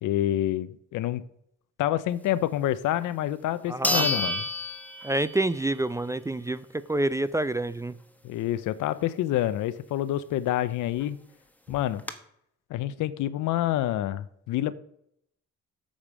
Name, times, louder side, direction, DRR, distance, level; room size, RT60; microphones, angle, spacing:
voice 1, 0.0-1.2 1.8-4.4 8.2-11.2 11.7-12.0 12.7-14.7, left 13 dB, 85° left, 0.7 m, -27 dB
sound 1, 3.0-3.1 3.8-5.6 6.0-6.1 10.7-10.8 11.0-11.1 11.7-12.1, left 1 dB, 5° left, 1.1 m, -29 dB
voice 2, 3.7-4.3 5.0-8.0, right 2 dB, 10° right, 0.4 m, -28 dB
8.4 x 5.2 x 7.3 m
cardioid pair, 90°, 30 cm